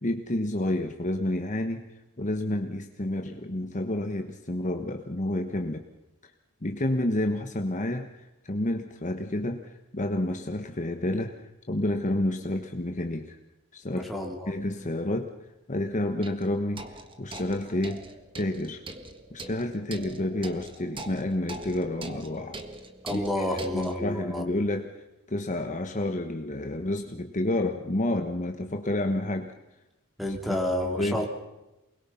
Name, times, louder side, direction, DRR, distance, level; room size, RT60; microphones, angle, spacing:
voice 1, 0.0-1.9 2.2-5.8 6.6-13.4 13.7-15.3 15.7-16.8 17.2-18.1 18.4-18.8 19.3-22.6 23.1-29.5 30.8-31.3, left 1 dB, 35° left, 5 dB, 1.3 m, -30 dB
voice 2, 13.9-14.5 23.0-24.5 30.2-31.3, left 1 dB, ahead, -1 dB, 3.2 m, -30 dB
sound 1, 14.7-14.8 16.2-24.0, right 2 dB, 25° right, 1.7 m, -43 dB
28.5 x 21.5 x 5.7 m, 1.0 s
head